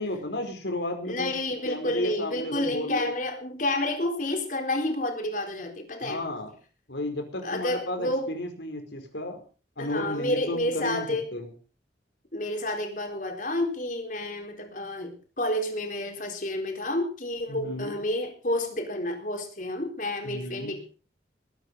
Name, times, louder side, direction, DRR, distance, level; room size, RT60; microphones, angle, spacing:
voice 1, 0.0-1.4 1.6-3.1 6.0-6.5 6.9-9.4 9.8-11.1 11.3-11.5 17.5-18.0 20.2-20.8, left 1 dB, 80° left, 5 dB, 4.8 m, -33 dB
voice 2, 1.0-6.2 7.4-8.3 9.8-11.3 12.3-20.9, left 1 dB, 45° left, 4 dB, 4.1 m, -30 dB
20.5 x 9.9 x 5.5 m, 0.38 s
head